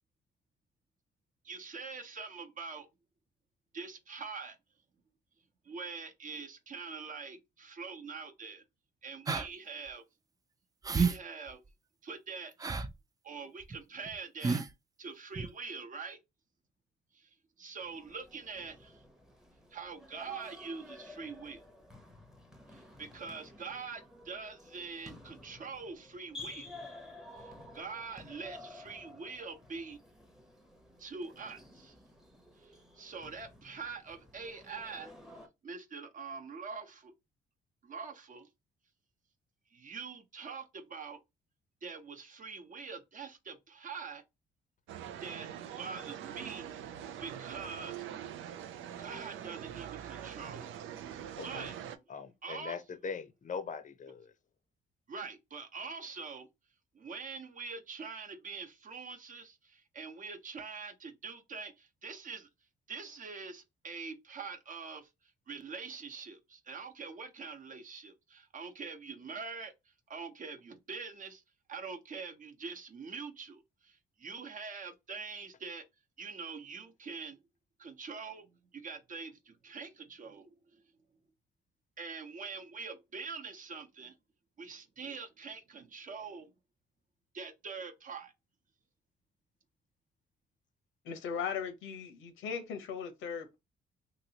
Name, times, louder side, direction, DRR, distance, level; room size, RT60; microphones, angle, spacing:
voice 1, 1.4-2.9 3.7-4.6 5.6-8.6 9.0-10.0 10.9-11.6 12.0-12.5 13.2-14.6 15.0-16.2 17.1-17.3 17.6-19.0 19.7-21.6 22.7-26.7 27.4-30.0 31.0-31.9 32.6-35.1 35.6-37.1 37.8-38.5 39.7-41.2 41.8-44.2 45.2-45.5 45.8-46.7 47.2-48.1 49.0-50.8 51.4-51.8 52.4-52.8 55.1-56.5 56.9-62.5 62.9-65.1 65.5-71.4 71.7-75.8 76.2-77.4 77.8-80.5 82.0-84.1 84.6-86.5 87.3-88.3, right 5 dB, 40° right, 0.8 m, -44 dB
sound 1, 9.3-9.5 9.9-10.0 10.8-11.2 11.5-11.6 12.6-12.9 13.6-13.8 14.1-14.2 14.4-14.7 15.3-15.5, right 4 dB, 20° right, 0.4 m, -30 dB
sound 2, 17.8-35.5, left 2 dB, 5° right, 0.8 m, -53 dB
sound 3, 44.9-52.0, right 9 dB, 80° right, 0.4 m, -43 dB
voice 2, 51.4-51.7 52.1-54.3, left 5 dB, 40° left, 0.6 m, -41 dB
voice 3, 91.0-93.6, left 7 dB, 85° left, 0.9 m, -38 dB
2.9 x 2.8 x 2.8 m
cardioid pair, 90°, 20 cm